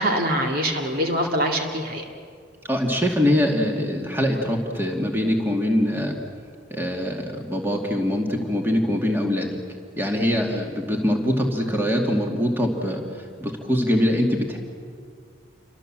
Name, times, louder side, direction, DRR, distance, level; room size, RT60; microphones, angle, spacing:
voice 1, 0.0-2.0, equal, 50° right, 2 dB, 2.3 m, -24 dB
voice 2, 2.6-6.2 6.7-9.5 10.0-13.0 13.4-14.6, equal, 10° right, 1 dB, 2.5 m, -23 dB
29.5 x 24.5 x 7.7 m, 2.2 s
head